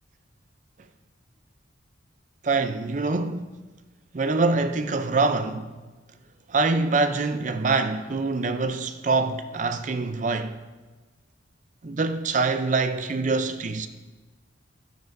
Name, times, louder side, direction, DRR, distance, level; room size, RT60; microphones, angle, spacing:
voice 1, 2.4-3.5 4.1-5.8 6.5-10.6 11.8-13.9, right 3 dB, 40° right, 0.4 m, -25 dB
12.5 x 9.2 x 2.6 m
head